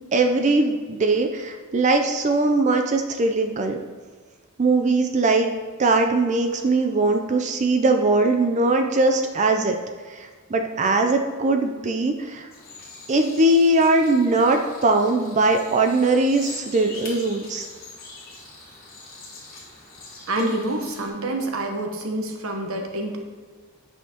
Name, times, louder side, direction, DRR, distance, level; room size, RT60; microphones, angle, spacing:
voice 1, 0.1-3.8 4.6-5.5 5.8-9.8 10.1-12.5 13.1-17.7, right 2 dB, 35° right, 4 dB, 0.4 m, -20 dB
sound 1, 12.5-21.1, left 3 dB, 45° left, 1.4 m, -43 dB
voice 2, 20.3-23.2, right 1 dB, 85° right, 3 dB, 1.0 m, -27 dB
8.6 x 5.6 x 2.9 m, 1.5 s
head